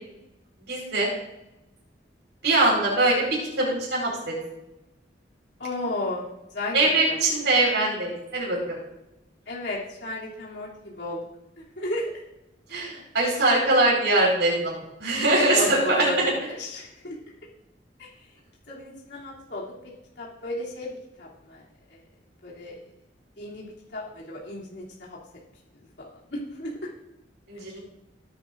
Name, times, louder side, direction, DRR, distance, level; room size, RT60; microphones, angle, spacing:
voice 1, 0.7-1.1 2.4-4.3 6.7-8.8 12.7-16.3 27.5-27.8, right 2 dB, 80° right, -3 dB, 4.7 m, -22 dB
voice 2, 5.6-7.2 9.5-11.2 11.6-12.0 12.7-12.8 15.6-16.2 16.4-17.1 18.0-18.1 18.7-19.6 20.2-20.9 21.2-21.6 22.4-22.8 23.4-25.2 26.0-26.7, left 1 dB, 70° left, -6 dB, 3.0 m, -34 dB
17.0 x 10.0 x 2.6 m, 0.94 s
head